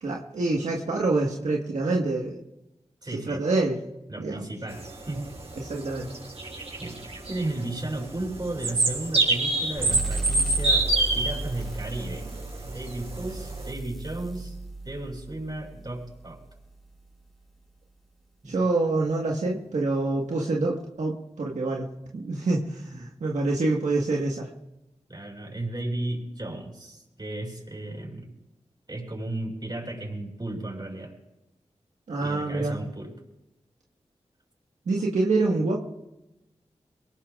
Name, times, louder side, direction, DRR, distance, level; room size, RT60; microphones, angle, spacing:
voice 1, 0.0-2.4 3.3-3.8 4.2-4.4 5.6-6.1 18.5-24.5 32.1-32.7 34.9-35.8, right 2 dB, 85° right, -2 dB, 1.6 m, -26 dB
voice 2, 3.0-3.4 4.1-5.2 6.8-10.9 11.1-12.3 12.6-14.6 14.8-16.4 18.4-18.7 25.1-28.3 28.9-31.1 32.2-33.1, right 1 dB, 35° right, -1 dB, 7.0 m, -34 dB
sound 1, 4.7-13.7, right 2 dB, 60° right, 6.8 m, -27 dB
sound 2, 9.8-17.0, right 2 dB, ahead, 3.6 m, -35 dB
24.0 x 18.5 x 2.5 m, 0.93 s
cardioid pair, 45°, 12 cm